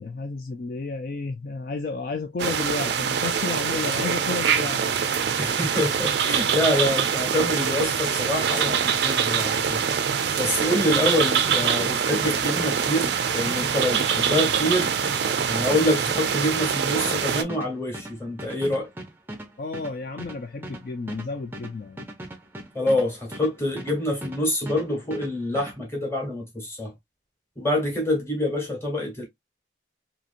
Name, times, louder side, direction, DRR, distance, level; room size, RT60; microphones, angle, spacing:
voice 1, 0.0-5.0 19.6-22.1, left 3 dB, 50° left, 0.3 m, -32 dB
sound 1, 2.4-17.4, right 7 dB, 65° right, 0.4 m, -24 dB
voice 2, 5.4-9.8 10.4-14.9 15.5-18.9 22.7-26.9 27.6-29.3, left 1 dB, 15° left, 1.2 m, -26 dB
sound 2, 11.4-24.4 24.7-25.8, right 1 dB, 10° right, 0.5 m, -39 dB
2.8 x 2.8 x 2.4 m
head